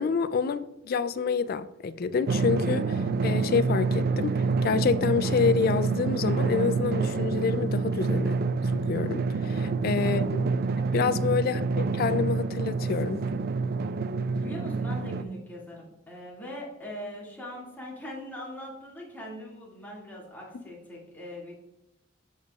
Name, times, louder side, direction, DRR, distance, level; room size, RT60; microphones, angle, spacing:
voice 1, 0.0-8.4 8.7-9.5 9.8-10.5 10.9-13.2, left 5 dB, 50° left, 0.3 m, -28 dB
Drum, 2.3-15.2, right 4 dB, 50° right, 0.3 m, -27 dB
voice 2, 10.9-11.6 14.4-21.5, left 1 dB, 10° left, 2.1 m, -41 dB
13.0 x 5.1 x 2.4 m
head